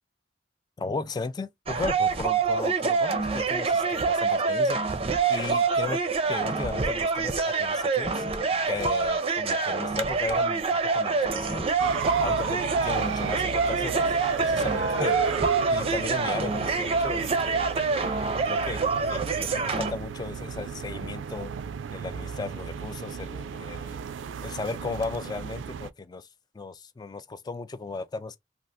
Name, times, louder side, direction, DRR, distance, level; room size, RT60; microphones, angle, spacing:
voice 1, 0.8-5.0 5.3-6.0 6.3-8.3 8.7-10.7 10.9-11.7 12.2-14.0 14.4-15.3 15.7-17.9 18.5-18.8 19.1-21.5 21.9-24.0 24.4-26.3 26.5-28.4, left 3 dB, 20° left, 0.3 m, -35 dB
sound 1, 1.7-19.9, right 4 dB, 30° right, 0.5 m, -26 dB
sound 2, 11.8-25.9, right 6 dB, 90° right, 0.4 m, -34 dB
3.4 x 2.4 x 2.5 m
head